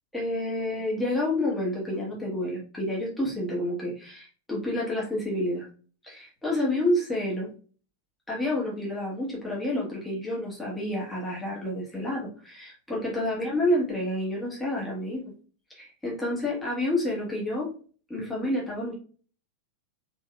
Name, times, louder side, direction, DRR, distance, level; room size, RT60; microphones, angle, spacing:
voice 1, 0.1-5.7 6.0-7.5 8.3-15.2 15.8-17.7 18.1-18.9, left 1 dB, 5° left, -5 dB, 1.4 m, -29 dB
3.6 x 3.4 x 2.3 m, 0.40 s
figure-of-eight pair, 90°, 0 cm